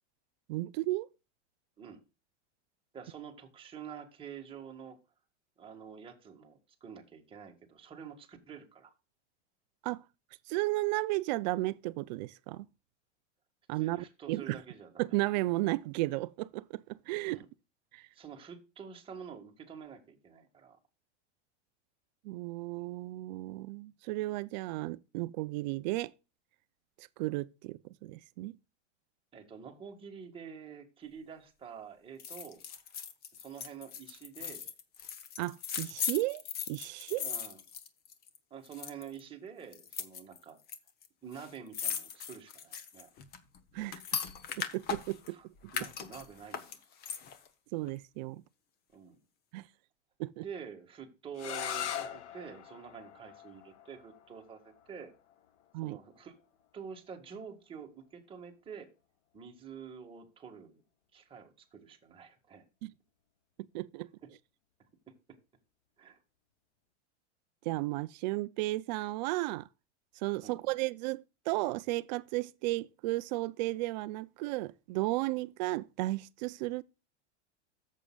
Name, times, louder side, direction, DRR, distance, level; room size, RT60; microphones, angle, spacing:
voice 1, 0.5-1.1 9.8-10.0 10.5-12.7 13.7-14.6 15.0-17.4 17.9-18.1 22.2-26.1 27.0-28.6 35.4-37.2 43.7-44.0 44.6-45.4 47.7-48.4 49.5-49.7 50.2-50.4 55.7-56.0 62.8-62.9 63.7-64.1 67.7-69.7 70.2-76.8, right 19 dB, 40° right, 0.4 m, -34 dB
voice 2, 2.9-5.0 5.6-8.9 13.7-15.1 17.3-17.5 18.1-20.8 29.3-32.6 33.4-34.7 37.1-37.6 38.5-40.6 41.2-43.1 45.2-45.5 45.7-46.8 47.1-47.2 48.9-49.2 50.4-55.1 55.8-56.3 56.7-58.9 59.3-60.8 61.1-62.6 64.2-64.3 65.3-65.4 66.0-66.2 70.4-70.8, right 7 dB, 15° right, 1.7 m, -48 dB
sound 1, 32.2-38.4 38.6-39.2 39.7-40.8 41.0-41.1 41.3-45.3 45.7-47.5 47.8-47.9, left 7 dB, 25° left, 0.9 m, -39 dB
sound 2, 51.3-57.1, left 10 dB, 70° left, 1.2 m, -42 dB
13.5 x 7.5 x 2.3 m
supercardioid pair, 150°, 35 cm